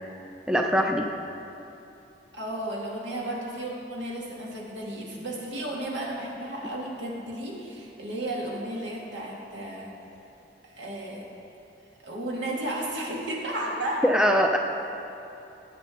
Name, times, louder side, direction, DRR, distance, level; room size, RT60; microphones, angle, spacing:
voice 1, 0.5-1.0 14.0-14.6, equal, 5° right, 2 dB, 0.4 m, -21 dB
voice 2, 2.3-9.9 10.6-11.2 12.0-14.1, right 1 dB, 80° right, -3 dB, 2.1 m, -33 dB
17.5 x 7.7 x 3.8 m, 2.9 s
head